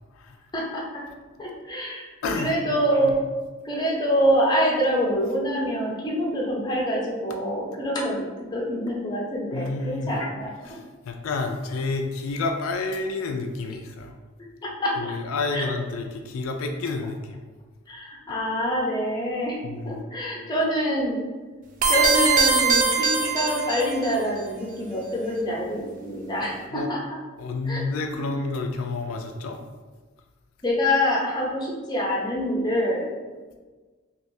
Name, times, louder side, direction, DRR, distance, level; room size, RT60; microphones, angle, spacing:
voice 1, 0.5-1.0 1.4-3.2 3.6-10.8 14.6-15.1 15.5-15.7 17.9-19.6 19.8-21.3 21.9-27.0 27.7-27.8 28.1-28.3 30.6-33.1, equal, 20° left, -3 dB, 0.6 m, -26 dB
voice 2, 9.5-10.1 10.6-14.2 15.0-17.4 19.6-20.0 26.7-26.9 27.4-29.6, left 3 dB, 85° left, 4 dB, 0.4 m, -29 dB
sound 1, 21.8-24.1, right 5 dB, 40° right, 0.4 m, -21 dB
3.2 x 2.9 x 2.7 m, 1.3 s
head